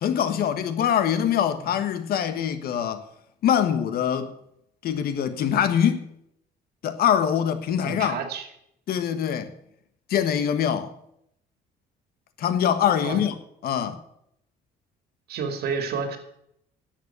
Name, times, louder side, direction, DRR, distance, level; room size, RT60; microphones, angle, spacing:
voice 1, 0.0-3.0 3.4-4.3 4.8-6.0 6.8-8.2 8.9-9.5 10.1-10.9 12.4-13.3 13.6-14.0, left 9 dB, 65° left, 1.4 m, -23 dB
voice 2, 7.8-8.5 13.0-13.2 15.3-16.2, right 5 dB, 70° right, 2.4 m, -30 dB
10.5 x 8.2 x 8.6 m
cardioid pair, 110°, 17 cm